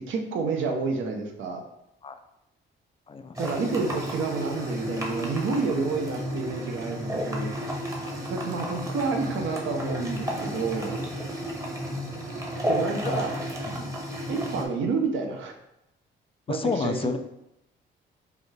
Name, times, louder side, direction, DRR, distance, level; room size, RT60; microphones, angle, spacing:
voice 1, 0.1-1.6 3.4-7.5 8.3-11.0 12.7-13.3 14.3-15.5 16.5-17.2, right 4 dB, 75° right, 3 dB, 0.7 m, -29 dB
voice 2, 3.1-3.4 13.0-13.1 13.6-13.9 16.5-17.2, left 5 dB, 30° left, 8 dB, 0.3 m, -30 dB
sound 1, 3.4-14.7, equal, 15° right, 0.8 m, -32 dB
5.0 x 2.4 x 3.2 m, 0.85 s
cardioid pair, 90°, 20 cm